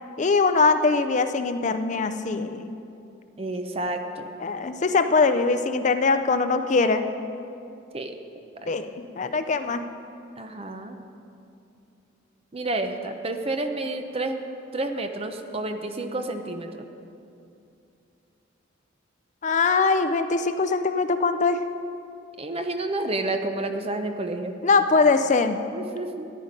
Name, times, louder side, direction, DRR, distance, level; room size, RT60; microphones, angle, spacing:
voice 1, 0.2-2.7 4.4-7.0 8.7-9.8 19.4-21.6 24.6-25.6, left 4 dB, 40° left, 9 dB, 0.5 m, -22 dB
voice 2, 3.4-4.3 7.9-8.2 8.6-8.8 10.4-11.0 12.5-14.4 14.7-16.7 22.4-24.5 25.7-26.3, right 2 dB, 30° right, 6 dB, 0.7 m, -30 dB
13.5 x 10.0 x 5.2 m, 2.6 s
head